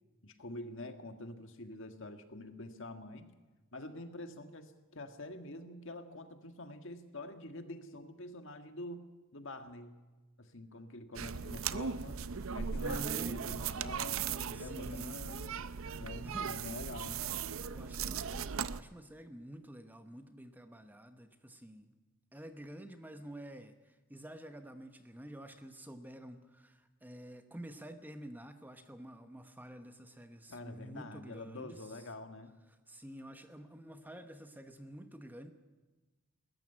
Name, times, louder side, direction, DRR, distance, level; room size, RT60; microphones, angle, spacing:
voice 1, 0.2-3.3 3.7-9.0 9.3-9.9 10.4-12.2 12.5-15.5 16.0-17.2 30.5-32.5, left 2 dB, 55° left, 7 dB, 1.7 m, -46 dB
sound 1, 11.1-18.8, right 6 dB, 60° right, 0.6 m, -38 dB
voice 2, 12.7-14.3 14.5-15.2 15.7-15.9 16.2-16.5 17.7-22.0 22.3-32.1 32.7-35.5, right 1 dB, 10° right, 8 dB, 1.0 m, -49 dB
20.5 x 14.0 x 9.8 m, 1.2 s
head